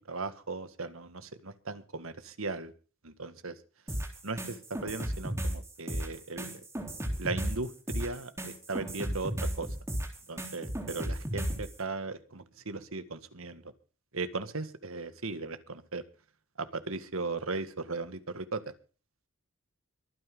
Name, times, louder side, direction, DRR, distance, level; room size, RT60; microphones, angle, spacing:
voice 1, 0.0-2.7 3.0-3.6 4.2-6.5 7.2-9.7 10.3-13.7 14.1-16.0 16.6-18.6, right 3 dB, 75° right, 11 dB, 1.8 m, -37 dB
sound 1, 3.9-11.7, right 1 dB, 15° right, 3.4 m, -34 dB
24.0 x 9.7 x 3.8 m, 0.37 s
head